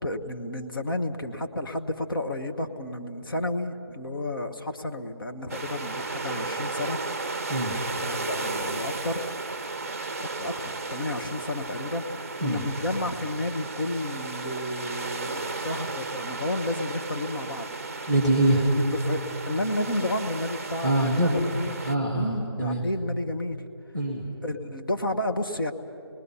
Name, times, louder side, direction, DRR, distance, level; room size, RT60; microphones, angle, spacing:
voice 1, 0.0-7.0 8.0-9.3 10.2-17.7 18.0-18.1 18.5-21.7 22.2-23.6 24.4-25.7, left 1 dB, 55° left, 5 dB, 1.3 m, -31 dB
sound 1, 5.5-22.0, right 3 dB, 35° right, 0.6 m, -34 dB
voice 2, 18.1-18.6 20.8-21.4 21.8-22.8 23.9-24.3, right 1 dB, 5° left, 0 dB, 1.0 m, -24 dB
28.5 x 20.0 x 5.6 m, 2.8 s
figure-of-eight pair, 170°, 14 cm